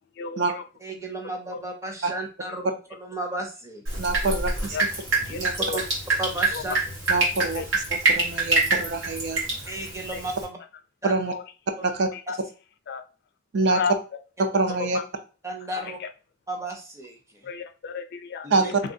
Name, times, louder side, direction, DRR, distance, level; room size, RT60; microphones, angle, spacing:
voice 1, 0.2-0.6 1.5-1.6 4.7-4.8 5.3-5.8 6.5-6.6 7.5-7.7 10.1-10.2 11.3-11.4 12.1-12.2 12.9-13.0 13.7-13.9 14.9-15.0 15.8-16.1 17.4-18.7, left 6 dB, 60° left, 8 dB, 0.4 m, -33 dB
voice 2, 0.8-3.8 5.3-5.5 5.7-5.8 6.2-6.7 9.7-10.6 11.0-11.2 11.8-11.9 12.3-12.4 15.4-16.0 16.5-17.4 18.4-18.7, right 2 dB, 15° right, 2 dB, 0.6 m, -34 dB
Drip, 3.9-10.4, right 3 dB, 85° right, 1.4 m, -26 dB
voice 3, 4.0-4.8 5.4-5.5 7.1-9.4 11.0-11.3 11.8-12.1 13.5-13.8 14.4-15.0 18.5-18.8, right 3 dB, 60° right, 6 dB, 0.5 m, -25 dB
3.2 x 2.7 x 2.6 m, 0.34 s
head